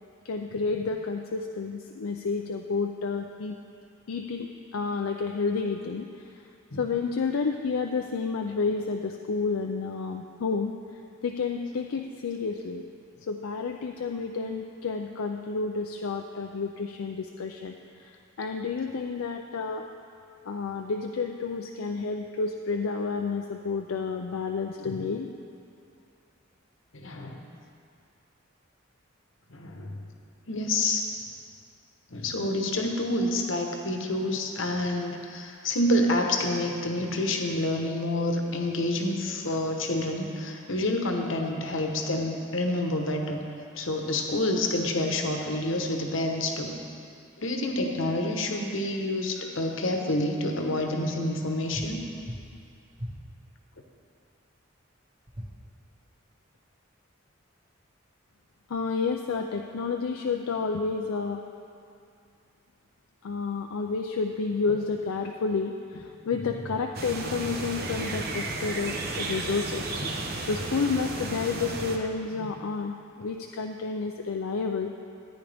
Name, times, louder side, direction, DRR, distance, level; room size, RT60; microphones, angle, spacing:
voice 1, 0.2-3.6 4.1-6.4 6.8-10.7 11.2-12.8 13.3-19.9 20.5-25.3 58.7-61.4 63.2-69.8 70.4-74.9, left 4 dB, 80° left, 3 dB, 0.5 m, -30 dB
voice 2, 26.9-27.4 29.5-30.0 30.5-31.0 32.1-43.4 43.8-46.7 47.4-52.0 66.4-66.5 70.0-70.1, left 1 dB, 65° left, 2 dB, 1.1 m, -28 dB
sound 1, 51.7-51.9 52.2-52.5 52.9-53.2 55.3-55.5, equal, 25° right, 1.2 m, -37 dB
sound 2, 66.9-72.0, right 2 dB, 45° right, 0.9 m, -33 dB
14.0 x 9.7 x 3.5 m, 2.5 s
head